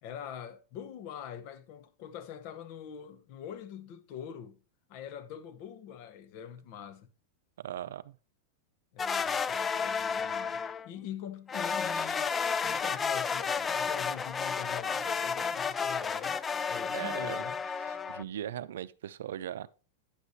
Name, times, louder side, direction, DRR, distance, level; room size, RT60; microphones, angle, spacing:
voice 1, 0.0-4.6 4.9-7.1 8.9-12.3 12.6-16.4 16.7-17.6, left 9 dB, 50° left, 1.0 m, -44 dB
voice 2, 7.6-8.2 16.9-17.4 17.8-19.7, right 10 dB, 85° right, 0.5 m, -39 dB
sound 1, 9.0-10.9 11.5-18.2, left 6 dB, 15° left, 0.3 m, -32 dB
10.0 x 8.1 x 2.8 m
supercardioid pair, 140°, 0 cm